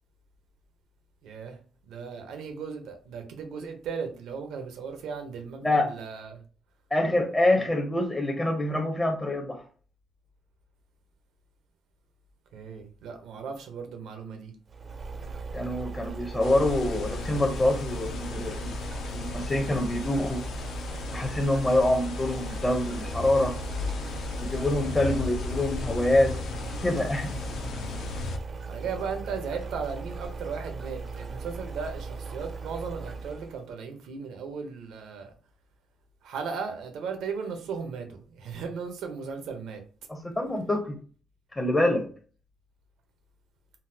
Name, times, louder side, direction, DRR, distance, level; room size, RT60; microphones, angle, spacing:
voice 1, 1.2-1.6 1.9-6.4 12.5-14.5 28.7-35.3 36.2-39.8, right 5 dB, 85° right, 0.7 m, -36 dB
voice 2, 5.6-5.9 6.9-9.6 15.5-18.8 19.1-20.4 21.0-23.6 24.4-26.4 26.8-27.4 40.1-40.9 41.5-42.0, left 1 dB, 20° left, 0.5 m, -26 dB
sound 1, 14.7-33.6, right 4 dB, 45° right, 0.4 m, -38 dB
sound 2, 16.4-28.4, left 5 dB, 75° left, 0.4 m, -36 dB
3.9 x 2.0 x 2.7 m
cardioid pair, 90°, 0 cm